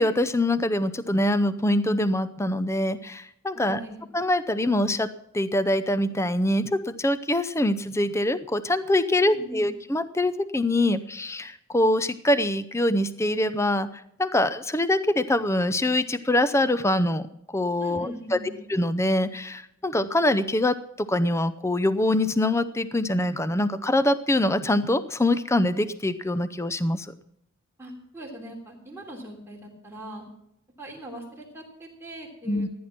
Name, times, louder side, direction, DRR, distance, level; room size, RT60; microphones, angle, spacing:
voice 1, 0.0-3.8 4.1-5.1 5.3-13.9 14.2-17.3 17.5-18.4 18.7-27.1 32.5-32.7, left 1 dB, 15° left, 13 dB, 0.6 m, -24 dB
voice 2, 3.5-4.0 9.2-9.7 17.8-18.6 27.8-30.3 30.8-32.7, right 1 dB, 10° right, -2 dB, 3.3 m, -41 dB
15.0 x 10.5 x 5.9 m, 0.77 s
head